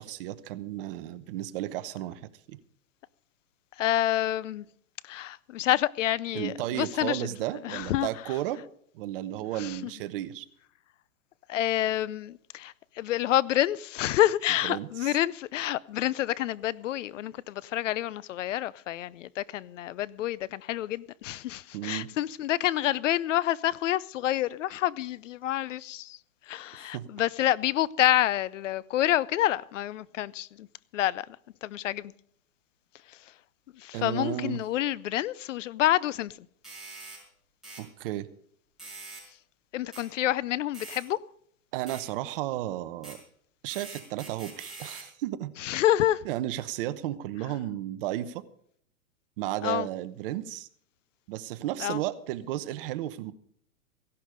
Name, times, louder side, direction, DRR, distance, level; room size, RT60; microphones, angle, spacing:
voice 1, 0.0-2.2 2.5-2.6 6.3-8.6 8.9-10.5 14.6-15.1 21.7-22.1 26.9-27.1 33.9-34.6 37.8-38.3 41.7-43.2 43.6-45.5 46.2-48.4 49.4-50.7 51.3-53.3, right 13 dB, 40° right, 1.0 m, -33 dB
voice 2, 3.8-4.6 5.0-7.3 7.6-8.1 9.5-9.9 11.5-26.2 26.5-30.7 30.9-31.3 31.6-32.1 33.1-33.2 33.7-36.4 39.7-41.2 45.6-46.2 49.6-49.9 51.8-52.0, left 13 dB, 60° left, 0.7 m, -28 dB
sound 1, 36.6-37.2 37.6-37.8 38.8-39.3 39.9-40.1 40.7-41.0 41.9-42.0 43.0-43.2 43.7-45.1, right 3 dB, ahead, 5.5 m, -44 dB
16.0 x 11.5 x 5.1 m
hypercardioid pair, 140°, 42 cm